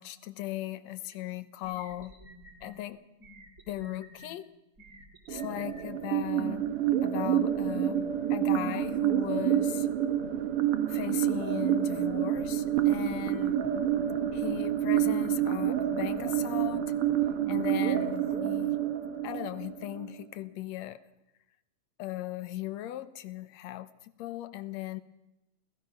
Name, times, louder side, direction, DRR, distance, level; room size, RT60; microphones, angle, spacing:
voice 1, 0.0-2.1 2.6-3.0 3.7-4.5 5.3-6.6 7.0-9.9 10.9-13.6 14.3-16.9 17.5-18.8 19.2-21.0 22.0-23.9 24.2-25.0, left 15 dB, 70° left, 14 dB, 2.0 m, -37 dB
sound 1, 1.1-1.2 1.6-2.7 3.2-4.3 4.8-5.8, right 1 dB, 30° right, 2.6 m, -51 dB
sound 2, 5.3-20.2, right 11 dB, 55° right, 1.8 m, -28 dB
28.0 x 18.5 x 5.8 m, 0.94 s
omnidirectional pair, 3.5 m